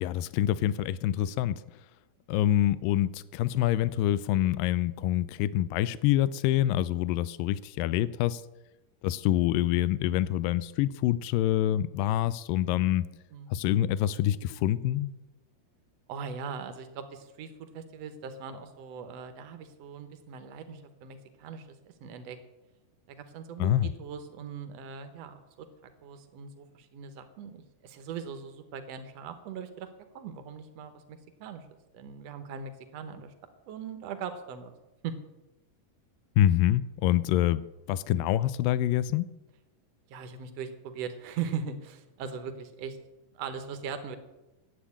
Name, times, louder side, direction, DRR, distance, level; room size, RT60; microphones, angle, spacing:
voice 1, 0.0-1.6 2.3-8.4 9.0-13.0 13.5-15.1 23.6-23.9 36.4-37.6 37.9-39.3, left 13 dB, 85° left, 2.0 m, -26 dB
voice 2, 16.1-22.4 23.1-25.7 26.0-29.9 30.1-31.7 31.9-33.3 33.7-34.7 35.0-35.2 40.1-43.0 43.3-44.2, right 6 dB, 70° right, 1.6 m, -40 dB
11.0 x 8.4 x 8.5 m
omnidirectional pair, 4.4 m